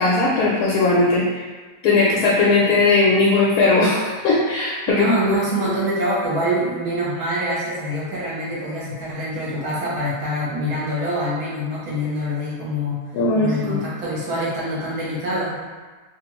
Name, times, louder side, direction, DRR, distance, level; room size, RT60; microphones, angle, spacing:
voice 1, 0.0-1.4 1.8-5.4 13.1-13.8, left 3 dB, 80° left, -6 dB, 1.1 m, -18 dB
voice 2, 4.9-13.0 13.3-15.6, equal, 70° right, -7 dB, 1.4 m, -25 dB
3.0 x 2.5 x 3.0 m, 1.4 s
omnidirectional pair, 1.7 m